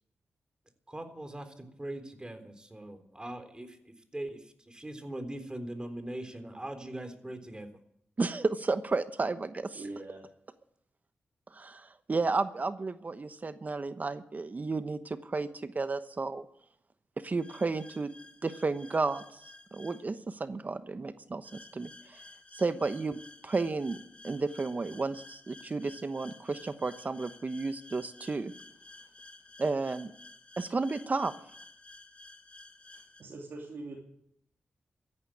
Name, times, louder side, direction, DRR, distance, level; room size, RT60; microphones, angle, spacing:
voice 1, 0.9-7.7, right 1 dB, 20° right, 8 dB, 3.7 m, -41 dB
voice 2, 8.2-9.8 11.5-16.4 17.2-18.1 18.4-19.4 19.7-22.2 22.5-24.0 24.2-28.5 29.6-30.1 30.6-31.3, right 3 dB, 45° right, 11 dB, 1.0 m, -32 dB
voice 3, 9.7-10.2 32.9-34.0, right 2 dB, 70° right, -3 dB, 3.3 m, -43 dB
sound 1, 17.4-20.0 21.4-33.2, left 2 dB, 30° left, 2.2 m, -53 dB
14.0 x 11.0 x 8.7 m, 0.73 s
supercardioid pair, 40°, 4 cm